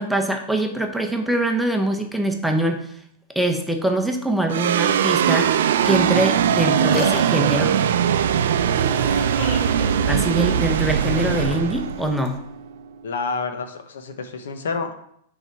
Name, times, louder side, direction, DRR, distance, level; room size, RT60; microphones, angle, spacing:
voice 1, 0.0-2.9 3.3-5.5 5.9-7.8 10.0-12.4, right 1 dB, ahead, 3 dB, 0.7 m, -23 dB
sound 1, 4.5-13.0, right 8 dB, 80° right, 0.4 m, -21 dB
sound 2, 6.3-12.4, left 7 dB, 40° left, 0.7 m, -34 dB
voice 2, 13.0-14.9, left 4 dB, 90° left, 7 dB, 0.9 m, -28 dB
7.0 x 4.0 x 4.6 m, 0.70 s
supercardioid pair, 145°, 0 cm